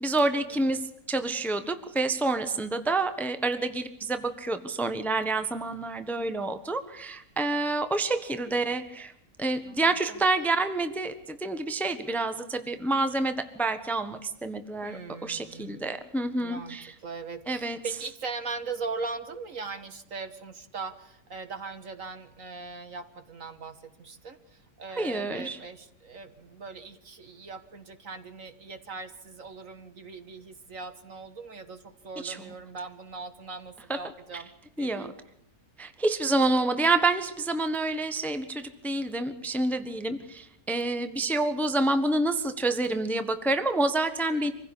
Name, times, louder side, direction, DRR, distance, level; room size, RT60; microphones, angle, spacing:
voice 1, 0.0-9.1 9.4-16.9 17.5-17.8 25.0-25.6 32.2-32.4 33.9-34.0 34.8-35.1 35.8-44.5, right 2 dB, ahead, 9 dB, 1.2 m, -28 dB
voice 2, 9.7-10.2 11.9-12.2 14.8-15.8 16.4-16.8 17.0-34.5 34.8-35.1 44.3-44.5, right 4 dB, 50° right, 10 dB, 1.8 m, -40 dB
26.0 x 16.0 x 8.5 m, 0.75 s
omnidirectional pair, 1.8 m